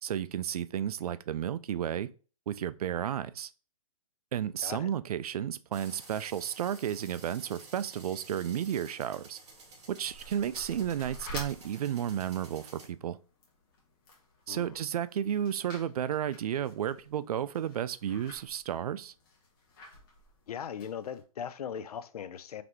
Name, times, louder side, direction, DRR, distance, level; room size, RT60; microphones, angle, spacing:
voice 1, 0.0-2.1 2.5-3.5 4.3-9.4 9.9-13.2 14.5-19.1, right 10 dB, 75° right, 0.4 m, -32 dB
sound 1, 5.7-12.9, right 3 dB, 50° right, 2.0 m, -52 dB
sound 2, 9.5-21.2, left 2 dB, 35° left, 1.3 m, -50 dB
voice 2, 14.5-14.8 20.5-22.6, left 8 dB, 80° left, 0.5 m, -39 dB
4.0 x 3.3 x 3.0 m
hypercardioid pair, 165°, 19 cm